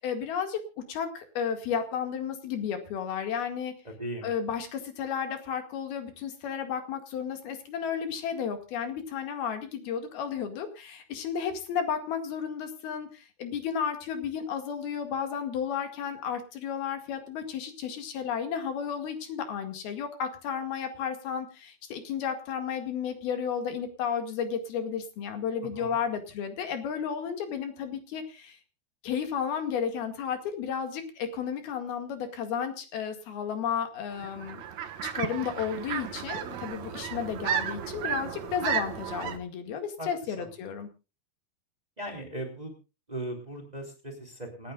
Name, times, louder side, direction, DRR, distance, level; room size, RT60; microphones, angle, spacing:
voice 1, 0.0-3.7 4.2-28.6 29.0-34.6 35.0-40.9, left 7 dB, 70° left, 6 dB, 3.9 m, -33 dB
voice 2, 3.8-4.3 25.8-26.0 40.0-40.1 40.4-40.5 42.0-42.7 43.1-44.7, right 1 dB, 10° right, 2 dB, 2.8 m, -38 dB
sound 1, 34.1-39.4, right 8 dB, 60° right, 2.2 m, -33 dB
28.0 x 10.0 x 2.4 m, 0.30 s
omnidirectional pair, 4.6 m